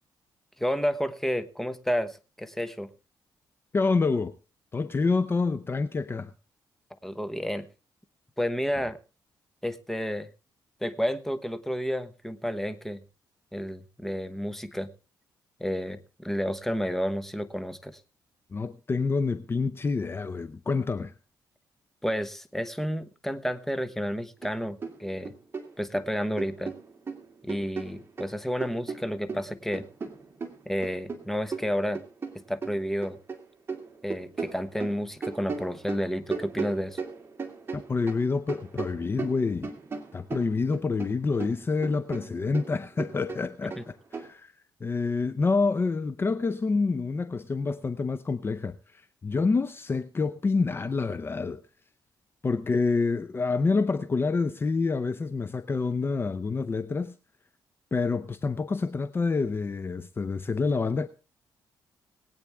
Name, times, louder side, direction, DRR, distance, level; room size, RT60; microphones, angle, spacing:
voice 1, 0.6-2.9 7.0-7.7 8.4-9.0 9.6-10.3 10.8-13.0 13.5-14.9 15.6-18.0 22.0-25.3 25.8-26.7 27.4-29.8 30.7-32.0 32.5-33.2 34.0-37.0, equal, 5° left, 1.1 m, -31 dB
voice 2, 3.7-4.3 4.7-6.3 18.5-21.1 37.7-39.7 40.1-44.5 44.8-51.6 52.4-57.2 57.9-61.1, left 4 dB, 30° left, 0.7 m, -27 dB
sound 1, 24.4-24.6 24.8-26.0 26.4-28.3 28.6-33.4 33.7-38.2 38.5-41.1 41.4-44.3, right 4 dB, 30° right, 2.5 m, -37 dB
21.0 x 8.9 x 3.5 m
cardioid pair, 90°, 8 cm